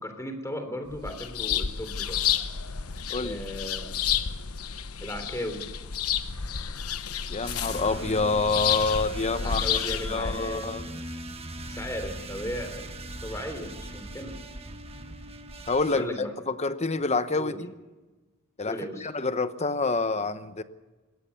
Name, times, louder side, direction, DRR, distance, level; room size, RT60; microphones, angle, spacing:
voice 1, 0.0-2.2 3.2-4.0 5.0-5.7 9.4-10.9 11.5-14.4 15.9-16.3 17.4-17.6 18.7-19.1, equal, 15° left, 7 dB, 3.3 m, -36 dB
sound 1, 0.9-10.4, left 8 dB, 90° left, 1.1 m, -31 dB
voice 2, 3.1-3.4 7.3-9.6 10.0-10.8 15.7-17.7 18.6-20.6, left 3 dB, 30° left, 12 dB, 0.9 m, -27 dB
sound 2, 7.4-16.0, right 1 dB, 25° right, 1.4 m, -40 dB
20.5 x 18.0 x 7.0 m, 1.2 s
head